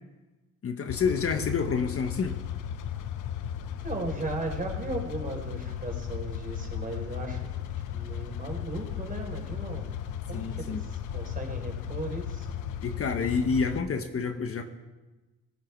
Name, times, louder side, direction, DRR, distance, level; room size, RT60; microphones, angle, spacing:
voice 1, 0.6-2.4 10.3-10.8 12.8-14.6, left 5 dB, 50° left, 6 dB, 1.5 m, -28 dB
sound 1, 0.9-13.8, left 9 dB, 85° left, 1.1 m, -35 dB
voice 2, 3.8-7.7 7.9-9.9 10.3-12.5, right 2 dB, 30° right, 1 dB, 5.0 m, -36 dB
18.5 x 14.5 x 4.8 m, 1.2 s
cardioid pair, 90°, 30 cm